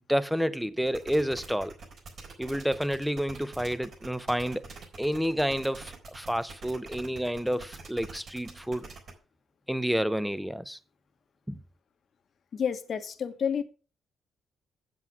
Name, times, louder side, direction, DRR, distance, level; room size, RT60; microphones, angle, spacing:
voice 1, 0.1-1.8 2.4-4.7 5.0-8.9 9.7-10.8 11.5-11.6, equal, 5° right, 0.7 m, -29 dB
sound 1, 0.9-9.1, right 4 dB, 55° right, 4.0 m, -45 dB
voice 2, 12.5-13.6, left 7 dB, 50° left, 1.1 m, -30 dB
7.9 x 7.7 x 6.0 m
cardioid pair, 90°, 0 cm